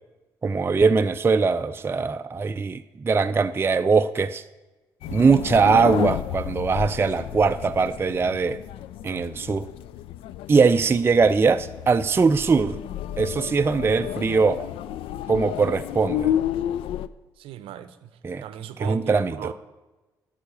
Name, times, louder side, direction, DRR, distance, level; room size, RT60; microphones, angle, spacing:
voice 1, 0.4-4.4 5.1-8.6 9.0-9.7 10.5-12.8 13.2-14.7 15.3-16.3 18.2-18.4 18.8-19.5, right 4 dB, 25° right, 10 dB, 0.4 m, -21 dB
sound 1, 5.0-17.1, left 11 dB, 60° left, 0.3 m, -31 dB
voice 2, 17.4-18.1 18.4-19.5, right 11 dB, 60° right, 13 dB, 0.6 m, -37 dB
12.5 x 5.6 x 6.5 m, 1.1 s
figure-of-eight pair, 40°, 10 cm